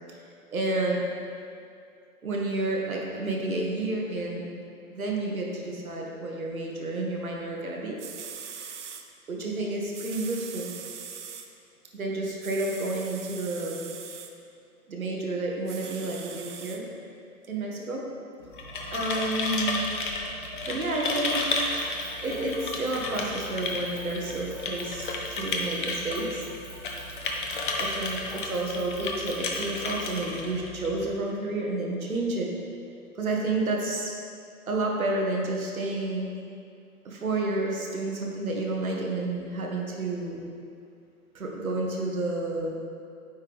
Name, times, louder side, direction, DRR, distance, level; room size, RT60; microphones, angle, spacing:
voice 1, 0.5-1.0 2.2-4.5 4.9-8.0 9.3-10.7 11.9-13.8 14.9-16.9 17.5-18.0 18.9-19.9 20.6-21.6 22.1-26.5 27.8-32.5 33.1-34.1 34.7-36.3 37.0-40.4 41.3-42.8, right 2 dB, 70° right, -1 dB, 1.2 m, -30 dB
sound 1, 7.7-7.8 8.0-9.0 9.9-11.5 12.4-14.3 15.7-16.8 17.4-17.5, right 7 dB, 55° right, 0.5 m, -41 dB
sound 2, 18.4-31.1, left 3 dB, 35° left, 0.6 m, -32 dB
sound 3, 21.2-30.4, equal, 10° left, 1.2 m, -48 dB
9.1 x 3.6 x 3.4 m, 2.4 s
figure-of-eight pair, 125°, 44 cm